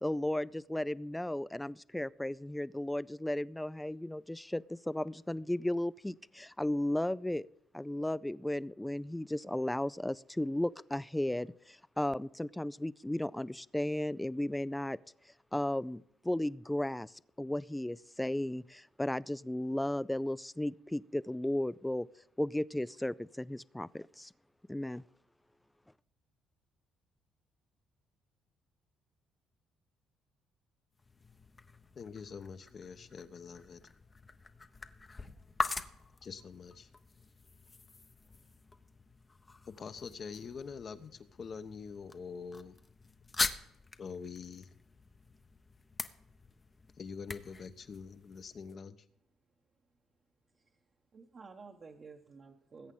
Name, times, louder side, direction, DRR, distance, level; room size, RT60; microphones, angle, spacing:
voice 1, 0.0-7.5 7.7-15.0 15.5-22.1 22.4-24.3 24.7-25.0, left 1 dB, 5° left, 19 dB, 0.4 m, -35 dB
sound 1, 30.9-48.7, left 3 dB, 25° left, 0.8 m, -43 dB
voice 2, 31.9-33.8 36.2-36.9 39.7-42.8 44.0-44.7 47.0-49.0, left 5 dB, 45° left, 10 dB, 1.0 m, -45 dB
voice 3, 50.5-50.8 51.1-52.9, right 4 dB, 40° right, 1 dB, 1.1 m, -52 dB
20.5 x 8.3 x 3.9 m, 0.77 s
supercardioid pair, 75°, 0 cm